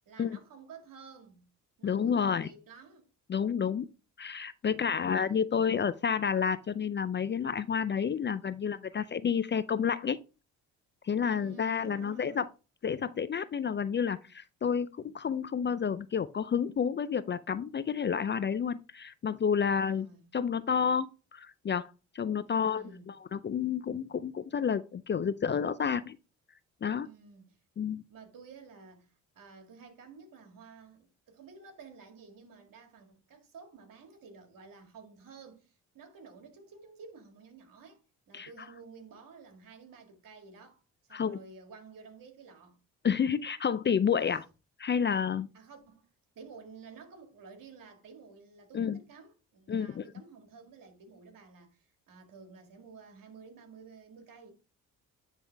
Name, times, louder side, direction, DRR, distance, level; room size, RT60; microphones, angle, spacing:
voice 1, 0.1-1.5 1.8-3.1 4.7-5.4 11.3-12.5 19.6-20.3 22.5-23.1 27.0-27.6 28.1-40.8 41.1-42.8 45.5-46.1 46.4-54.5, right 5 dB, 60° right, 2.0 m, -52 dB
voice 2, 1.8-2.5 3.3-3.9 4.2-10.2 11.0-12.4 12.8-20.1 20.3-22.8 23.3-26.2 26.8-27.1 27.8-28.0 38.3-38.5 41.1-41.4 43.0-44.5 44.8-45.5 48.7-49.0 49.7-50.0, left 7 dB, 30° left, 0.5 m, -30 dB
10.0 x 3.5 x 3.4 m
supercardioid pair, 60°, 37 cm